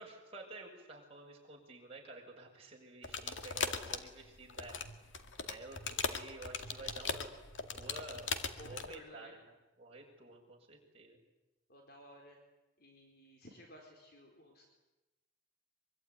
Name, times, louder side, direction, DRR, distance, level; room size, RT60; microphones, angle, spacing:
voice 1, 0.0-4.8 5.4-7.3 7.6-8.3 8.6-9.4 9.8-11.2, right 2 dB, 30° right, -1 dB, 6.6 m, -51 dB
sound 1, 3.0-8.9, left 5 dB, 70° left, 2.1 m, -39 dB
voice 2, 8.6-9.4 11.7-12.4 12.8-14.7, equal, 50° left, 1 dB, 4.4 m, -55 dB
24.5 x 24.0 x 9.7 m, 1.0 s
head